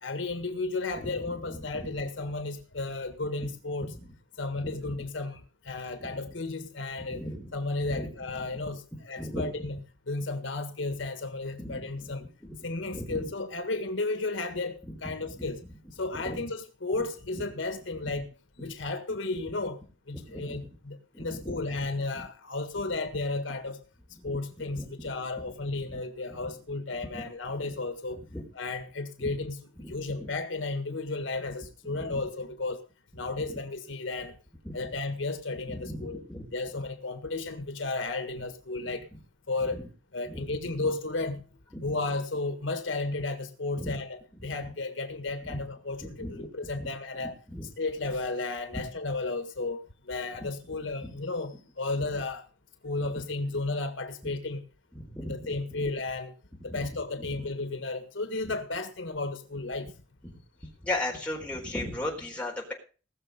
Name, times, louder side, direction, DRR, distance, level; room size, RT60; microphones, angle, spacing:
voice 1, 0.0-3.9 4.4-7.2 7.5-9.7 10.1-12.3 12.6-15.6 15.9-18.3 18.6-19.8 20.1-23.8 24.2-28.2 28.5-29.6 29.9-32.8 33.1-34.3 34.7-36.2 36.5-39.1 39.5-39.8 40.1-41.4 41.8-47.3 47.8-52.4 52.8-54.6 55.2-56.3 56.6-59.9, left 3 dB, 75° left, 1.7 m, -33 dB
voice 2, 1.0-1.9 3.4-3.5 3.8-4.1 4.6-5.0 6.0-6.2 7.0-7.5 7.8-8.1 8.5-8.6 8.9-9.5 11.6-12.1 12.4-12.6 12.9-13.3 14.8-15.5 16.1-16.4 17.4-17.5 18.0-18.1 18.6-18.7 20.1-20.6 21.1-21.7 24.2-24.4 24.8-25.1 25.9-26.0 26.4-26.5 27.1-27.2 28.3-28.4 29.2-29.3 29.8-30.3 31.9-32.2 33.2-33.6 34.6-34.9 35.5-36.5 38.8-38.9 39.7-39.8 40.3-40.9 41.7-41.9 43.8-43.9 44.5-44.7 45.4-45.6 46.0-46.9 47.2-47.7 48.7-48.8 50.4-50.5 51.0-51.1 52.0-52.1 54.2-54.3 54.9-55.6 56.7-56.9 57.2-57.4 60.2-60.4 60.8-62.7, left 1 dB, 5° left, 4.1 m, -38 dB
20.0 x 6.7 x 5.3 m
head